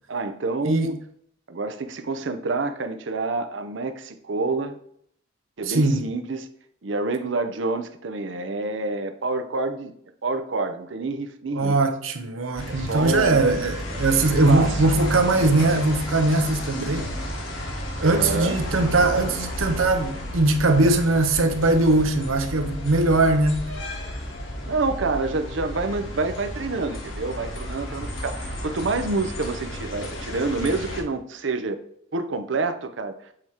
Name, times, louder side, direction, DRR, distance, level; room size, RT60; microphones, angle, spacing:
voice 1, 0.1-1.0 1.5-4.8 5.6-6.5 6.8-9.9 10.2-11.8 12.7-13.5 14.5-14.8 18.0-18.6 24.7-31.8 32.1-33.2, right 3 dB, 65° right, 0.6 m, -27 dB
voice 2, 0.6-0.9 5.7-6.1 11.5-17.1 18.0-23.7, right 2 dB, 90° right, 0.8 m, -21 dB
sound 1, 12.6-31.0, equal, 75° left, 1.5 m, -32 dB
7.7 x 3.0 x 4.7 m
head